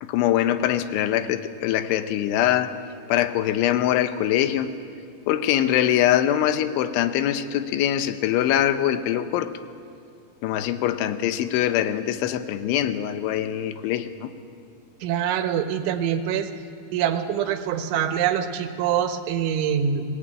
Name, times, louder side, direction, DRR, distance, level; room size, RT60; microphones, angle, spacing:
voice 1, 0.0-2.7 3.1-4.7 5.3-9.5 10.4-14.3, left 11 dB, 85° left, 10 dB, 3.4 m, -23 dB
voice 2, 15.0-16.5 16.9-20.0, right 9 dB, 80° right, 7 dB, 3.7 m, -24 dB
26.5 x 18.5 x 9.0 m, 2.5 s
omnidirectional pair, 5.4 m